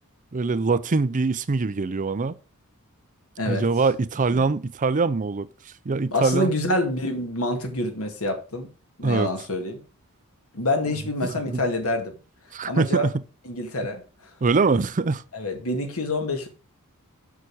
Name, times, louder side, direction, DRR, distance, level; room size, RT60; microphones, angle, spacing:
voice 1, 0.3-2.4 3.5-5.5 5.9-6.5 9.0-9.3 11.2-11.6 12.5-13.1 14.4-15.2, right 4 dB, 35° right, 0.5 m, -23 dB
voice 2, 6.1-8.7 9.0-9.8 10.5-12.1 12.6-13.1 13.5-14.0 15.3-16.5, left 1 dB, 70° left, 2.1 m, -26 dB
7.0 x 6.1 x 6.2 m
head